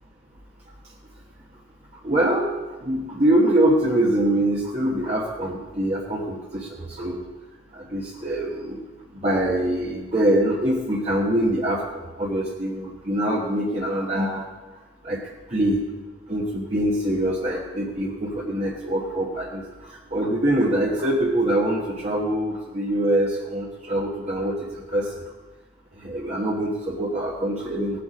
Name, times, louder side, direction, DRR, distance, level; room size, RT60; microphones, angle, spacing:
voice 1, 2.0-2.5 2.8-7.2 7.7-8.8 9.2-14.4 15.0-15.2 15.5-15.8 16.3-19.6 20.1-25.2 26.0-28.0, right 1 dB, 35° right, -4 dB, 1.2 m, -24 dB
18.0 x 7.0 x 5.2 m, 1.2 s
head